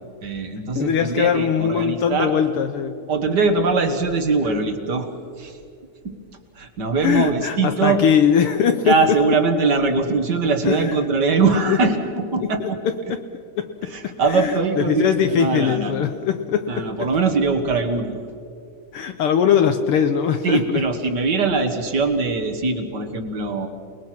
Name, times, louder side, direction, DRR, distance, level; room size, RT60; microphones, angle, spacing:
voice 1, 0.2-2.3 3.1-5.1 5.4-5.6 6.0-6.2 6.5-8.0 8.8-12.8 13.9-16.0 16.7-18.2 20.4-23.7, right 4 dB, 45° right, 6 dB, 1.5 m, -21 dB
voice 2, 0.7-3.0 7.0-8.9 10.6-11.0 11.5-11.8 12.4-13.2 13.6-17.1 18.9-20.8, left 8 dB, 90° left, 7 dB, 1.2 m, -21 dB
29.0 x 20.5 x 5.9 m, 2.5 s
omnidirectional pair, 3.5 m